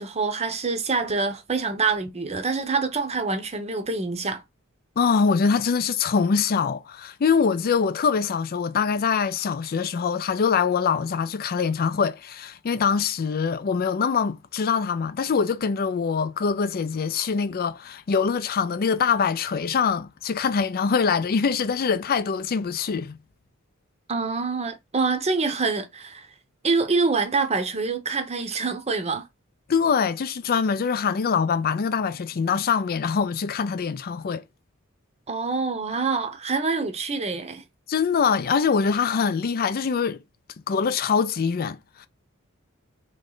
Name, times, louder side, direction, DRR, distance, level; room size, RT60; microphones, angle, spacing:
voice 1, 0.0-4.4 24.1-26.3 26.6-29.2 35.3-37.6, right 4 dB, 30° right, 0.8 m, -26 dB
voice 2, 5.0-23.2 29.7-34.4 37.9-40.2 40.7-42.1, left 6 dB, 45° left, 0.4 m, -24 dB
3.2 x 3.1 x 3.8 m
head